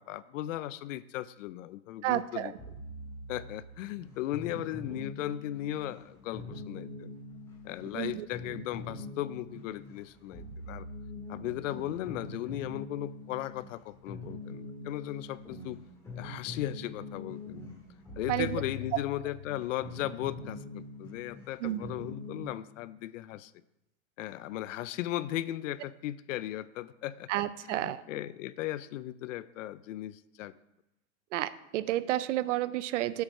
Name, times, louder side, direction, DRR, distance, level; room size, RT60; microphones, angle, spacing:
voice 1, 0.0-2.5 3.3-7.1 7.6-10.9 11.3-15.8 16.2-17.6 18.2-23.5 24.2-27.3 27.6-30.5, left 14 dB, 75° left, 17 dB, 0.5 m, -37 dB
voice 2, 2.0-2.5 7.9-8.3 18.3-18.6 21.6-21.9 27.3-28.0 31.3-33.2, right 14 dB, 65° right, 16 dB, 0.6 m, -31 dB
sound 1, 2.6-22.5, left 2 dB, 5° left, 1.8 m, -43 dB
8.2 x 4.7 x 6.5 m, 0.91 s
supercardioid pair, 160°, 39 cm